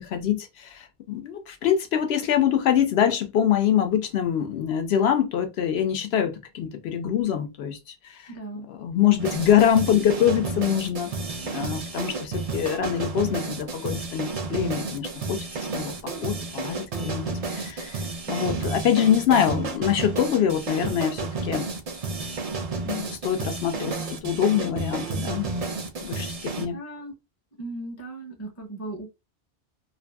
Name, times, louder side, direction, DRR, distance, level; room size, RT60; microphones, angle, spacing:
voice 1, 0.0-8.3 8.7-11.1 11.5-15.4 15.7-15.9 16.2-18.0 18.3-21.7 22.8-25.5 26.0-26.8, left 9 dB, 80° left, 0.8 m, -24 dB
voice 2, 8.3-8.7 26.3-27.1 27.6-29.1, right 2 dB, 20° left, 0.5 m, -37 dB
sound 1, 9.2-26.6, right 3 dB, 50° right, 0.4 m, -31 dB
2.5 x 2.5 x 2.3 m
omnidirectional pair, 1.1 m